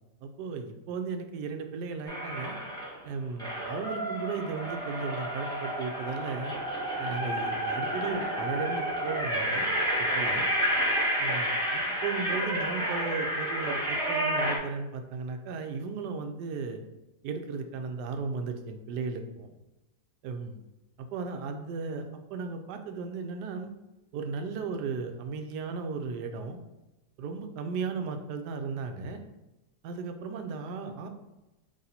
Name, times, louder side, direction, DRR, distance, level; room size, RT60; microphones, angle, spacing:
voice 1, 0.2-2.6 3.0-6.6 7.0-9.7 10.0-10.5 11.2-16.8 17.2-19.6 20.2-20.6 21.0-23.7 24.1-26.6 27.2-29.2 29.8-31.1, right 4 dB, 80° right, 6 dB, 1.2 m, -35 dB
sound 1, 2.1-3.0 3.4-14.6, equal, 5° left, 1.2 m, -30 dB
4.0 x 3.0 x 4.1 m, 0.99 s
omnidirectional pair, 1.8 m